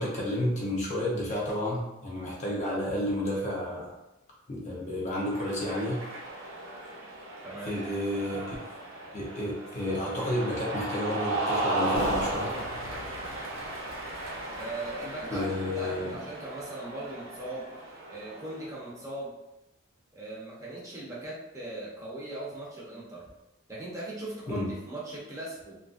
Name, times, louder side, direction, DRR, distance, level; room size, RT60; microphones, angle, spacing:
voice 1, 0.0-3.9 4.5-6.0 7.6-8.5 9.1-12.5 15.3-16.1 24.5-24.7, left 1 dB, 35° left, -4 dB, 0.6 m, -31 dB
Cheering, 5.2-18.7, right 2 dB, 70° right, 0.7 m, -35 dB
voice 2, 7.4-7.8 14.5-17.7 18.1-19.3 20.1-23.3 23.7-25.8, right 1 dB, 15° right, -7 dB, 0.7 m, -39 dB
sound 1, 11.9-17.0 17.2-17.4, left 3 dB, 85° left, 0.4 m, -45 dB
2.8 x 2.5 x 2.4 m, 0.94 s
head